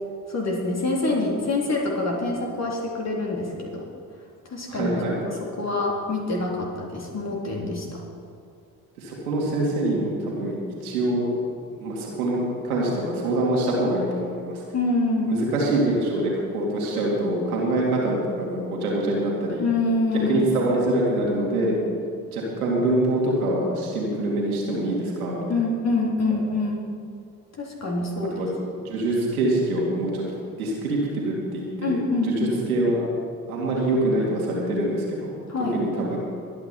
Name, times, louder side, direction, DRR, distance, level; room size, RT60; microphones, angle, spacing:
voice 1, 0.3-3.9 4.5-5.0 5.3-8.0 14.7-15.3 19.6-20.5 25.5-26.9 27.6-28.4 31.8-32.6 35.5-35.8, left 2 dB, 35° left, -3 dB, 3.8 m, -26 dB
voice 2, 4.7-5.2 9.0-10.6 10.8-11.3 11.8-14.6 15.3-19.6 20.3-21.8 22.3-25.5 28.3-28.5 28.8-30.2 30.5-31.9 32.2-32.3 32.7-33.1 33.5-35.4 35.7-36.2, right 1 dB, 80° right, -3 dB, 2.8 m, -24 dB
22.0 x 9.4 x 4.6 m, 2.3 s
figure-of-eight pair, 50°, 43 cm